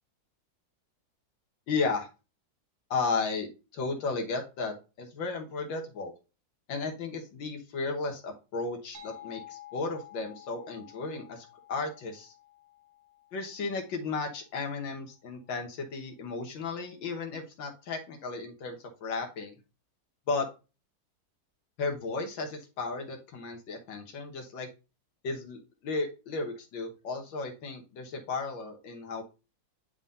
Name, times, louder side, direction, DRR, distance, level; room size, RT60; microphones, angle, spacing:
voice 1, 1.7-2.1 2.9-6.1 6.7-12.3 13.3-19.6 20.3-20.5 21.8-24.7 25.2-29.2, left 4 dB, 90° left, 2 dB, 1.9 m, -34 dB
sound 1, 8.9-14.4, left 10 dB, 80° right, 1.9 m, -51 dB
9.8 x 3.7 x 2.6 m, 0.30 s
omnidirectional pair, 2.0 m